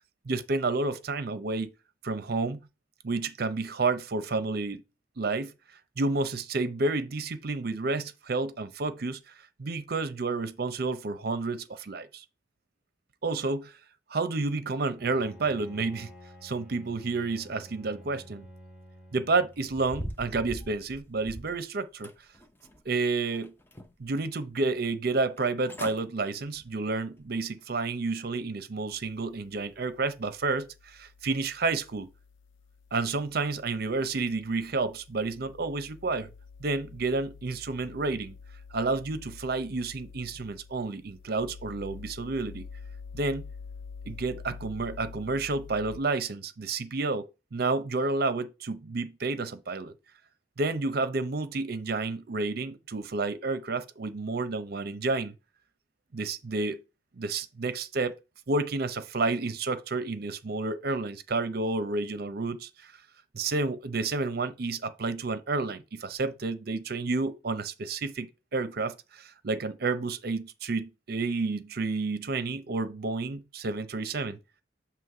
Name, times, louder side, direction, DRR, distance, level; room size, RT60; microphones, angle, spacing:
voice 1, 0.3-1.7 2.0-2.6 3.0-4.8 5.2-5.5 6.0-9.3 9.6-12.2 13.2-13.7 14.1-16.1 16.4-18.4 19.1-22.1 22.9-23.5 24.0-32.1 32.9-36.3 36.6-38.3 38.7-42.7 43.1-43.4 44.0-47.3 47.5-49.9 50.6-55.3 56.1-56.8 57.2-58.1 58.5-62.9 63.3-74.4, right 3 dB, 55° right, 0.6 m, -30 dB
Bowed string instrument, 15.0-20.3, equal, 5° right, 2.0 m, -51 dB
sound 1, 19.6-21.6 22.0-22.9 23.3-24.1 24.5-24.6 25.4-25.5 25.7-26.0 26.5-26.7 27.2-27.3, equal, 10° left, 0.7 m, -41 dB
sound 2, 28.9-46.0, left 5 dB, 85° left, 0.4 m, -48 dB
7.5 x 3.0 x 4.7 m
head